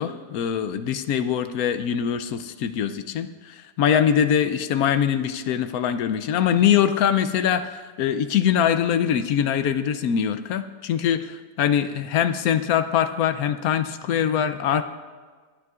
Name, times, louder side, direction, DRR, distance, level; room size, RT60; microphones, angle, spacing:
voice 1, 0.0-14.8, left 9 dB, 70° left, 10 dB, 1.0 m, -23 dB
21.5 x 9.4 x 2.4 m, 1.4 s
omnidirectional pair, 1.8 m